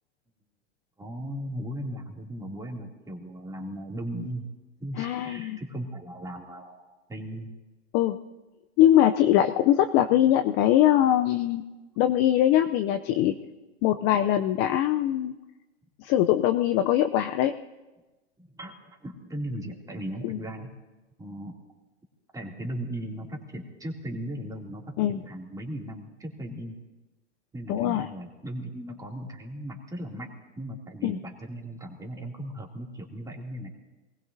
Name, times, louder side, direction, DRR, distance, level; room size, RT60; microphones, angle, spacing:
voice 1, 1.0-4.5 4.8-7.5 18.4-20.7 21.2-21.5 22.3-26.8 27.5-30.3 30.6-33.7, right 1 dB, 10° right, 0 dB, 2.6 m, -37 dB
voice 2, 5.0-5.6 7.9-8.2 8.8-11.6 12.0-13.3 13.8-15.3 16.0-17.5 20.2-20.4 25.0-25.2 27.7-28.1 31.0-31.2, left 12 dB, 30° left, 8 dB, 0.5 m, -22 dB
26.5 x 19.5 x 2.7 m, 1.2 s
hypercardioid pair, 120°, 36 cm